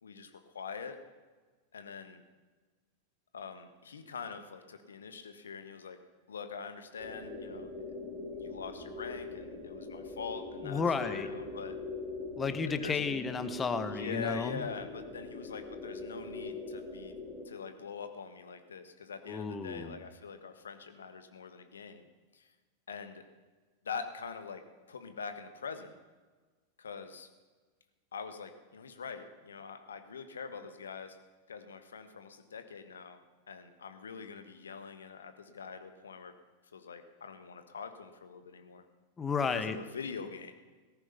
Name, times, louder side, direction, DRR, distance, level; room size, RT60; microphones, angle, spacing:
voice 1, 0.0-1.0 1.7-2.2 3.3-6.0 6.3-7.7 8.3-11.7 12.7-13.2 13.9-17.2 17.4-22.0 22.3-22.5 22.9-23.2 23.8-24.6 24.9-25.9 26.8-27.3 28.1-31.2 31.5-33.2 33.5-36.3 36.7-38.8 39.5-40.5, left 6 dB, 70° left, 8 dB, 1.4 m, -44 dB
sound 1, 7.0-17.5, left 3 dB, 25° right, 3.7 m, -42 dB
voice 2, 10.6-11.3 12.4-14.6 19.3-20.0 39.2-39.8, left 5 dB, 20° left, 10 dB, 1.1 m, -32 dB
17.5 x 14.5 x 5.7 m, 1.4 s
figure-of-eight pair, 90°, 0 cm